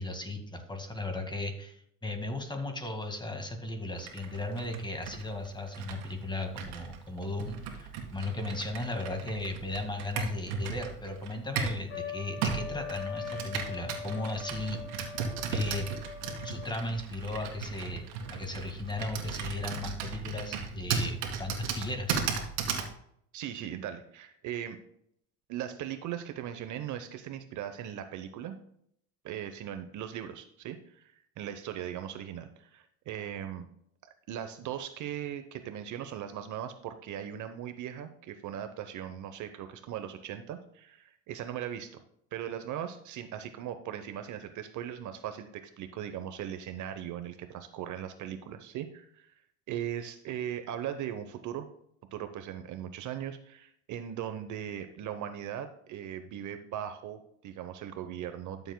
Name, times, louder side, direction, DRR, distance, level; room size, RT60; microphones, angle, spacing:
voice 1, 0.0-15.1 15.5-15.9 16.4-18.0 18.3-22.2, left 2 dB, 10° left, 5 dB, 1.8 m, -36 dB
Computer keyboard, 4.0-11.9 12.4-22.9, right 6 dB, 70° right, 2.1 m, -36 dB
Trumpet, 11.9-16.9, left 7 dB, 35° left, 1.7 m, -41 dB
voice 2, 23.3-24.8 25.5-28.6 29.2-33.7 34.0-42.0 42.3-49.4 49.7-51.7 52.1-58.7, right 10 dB, 50° right, 9 dB, 0.9 m, -39 dB
12.5 x 7.1 x 2.2 m, 0.70 s
supercardioid pair, 95°, 39 cm